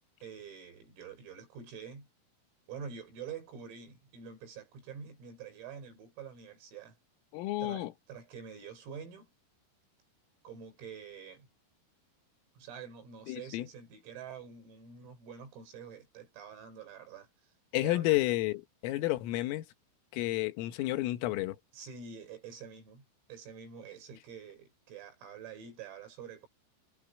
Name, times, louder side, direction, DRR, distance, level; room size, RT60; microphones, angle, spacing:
voice 1, 0.2-2.1 2.7-7.0 7.6-9.3 10.4-11.5 12.6-17.5 17.8-18.2 21.7-26.5, right 7 dB, 85° right, 8.1 m, -47 dB
voice 2, 7.3-7.9 13.3-13.7 17.7-19.7 20.1-21.6, left 17 dB, 80° left, 3.9 m, -31 dB
omnidirectional pair, 5.9 m